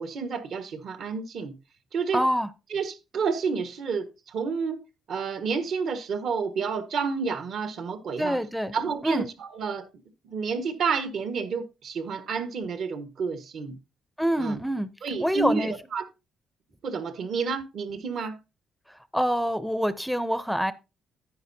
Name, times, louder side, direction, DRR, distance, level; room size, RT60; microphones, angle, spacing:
voice 1, 0.0-1.5 1.9-2.2 2.7-4.8 5.1-8.4 8.7-9.8 10.2-13.8 14.4-14.6 15.0-16.0 16.8-18.4, right 5 dB, 65° right, 1.4 m, -30 dB
voice 2, 2.1-2.5 8.2-8.7 9.0-9.3 14.2-14.9 15.2-15.7 19.1-20.7, equal, ahead, 0.6 m, -26 dB
10.5 x 9.4 x 2.7 m
cardioid pair, 90°, 0 cm